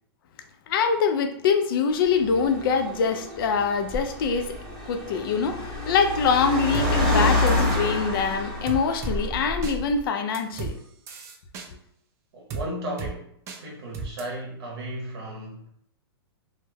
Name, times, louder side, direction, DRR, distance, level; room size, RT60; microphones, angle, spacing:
voice 1, 0.7-4.5 4.9-10.8, left 5 dB, 55° left, 0.4 m, -24 dB
Car, 2.0-10.0, left 2 dB, 5° left, 0.9 m, -27 dB
sound 1, 6.7-6.9 7.5-7.8 8.7-9.2 9.6-9.8 10.3-10.7 11.1-11.7 12.5-12.6 13.0-13.1 13.5-13.6 13.9-14.2, right 4 dB, 20° right, 0.4 m, -33 dB
voice 2, 12.3-13.3 13.6-15.7, right 1 dB, 65° right, 0.7 m, -35 dB
2.2 x 2.1 x 3.1 m
hypercardioid pair, 145°, 13 cm